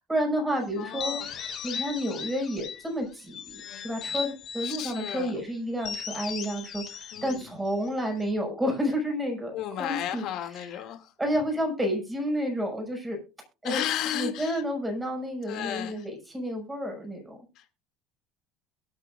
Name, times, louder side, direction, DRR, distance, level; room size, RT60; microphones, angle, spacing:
voice 1, 0.1-1.2 1.6-9.5 9.8-10.2 10.6-10.8 11.2-13.2 13.6-13.8 14.1-17.4, equal, 10° right, 6.0 m, -30 dB
voice 2, 0.8-1.3 4.6-5.3 7.1-7.4 9.5-11.1 13.6-14.6 15.5-16.0 17.6-17.7, left 11 dB, 55° left, 2.6 m, -33 dB
sound 1, 0.8-2.9 3.3-5.2 5.8-8.3, left 6 dB, 35° left, 3.7 m, -37 dB
23.0 x 8.9 x 2.6 m
cardioid pair, 155°, 0 cm